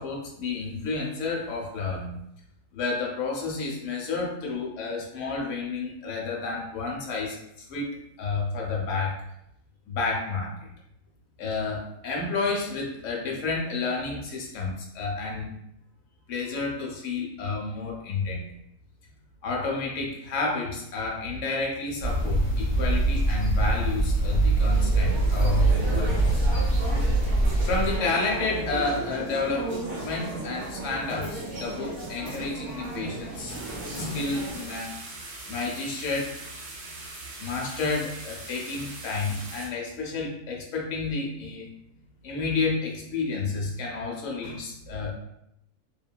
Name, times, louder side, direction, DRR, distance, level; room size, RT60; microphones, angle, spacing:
voice 1, 0.0-2.2 2.7-9.2 9.9-10.5 11.4-15.5 16.3-18.5 19.4-26.6 27.6-33.6 33.9-35.0 35.5-36.3 37.4-41.7 42.2-45.1, left 3 dB, 60° left, -1 dB, 0.9 m, -30 dB
sound 1, 22.0-28.0, right 2 dB, 30° left, 1.5 m, -23 dB
sound 2, 24.6-34.6, right 1 dB, 55° right, 1.1 m, -35 dB
sound 3, 33.5-39.7, right 2 dB, 80° right, 1.2 m, -41 dB
2.8 x 2.6 x 2.2 m, 0.77 s
omnidirectional pair, 1.6 m